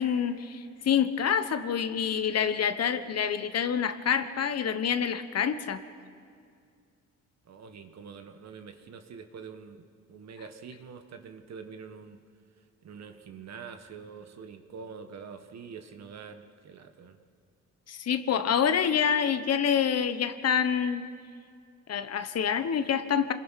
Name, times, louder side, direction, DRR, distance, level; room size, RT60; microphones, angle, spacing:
voice 1, 0.0-5.8 17.9-21.1 21.9-23.3, left 8 dB, 55° left, 11 dB, 1.2 m, -27 dB
voice 2, 7.4-12.2 12.8-17.2, right 6 dB, 60° right, 7 dB, 1.6 m, -45 dB
26.0 x 21.0 x 5.9 m, 2.3 s
cardioid pair, 90°, 30 cm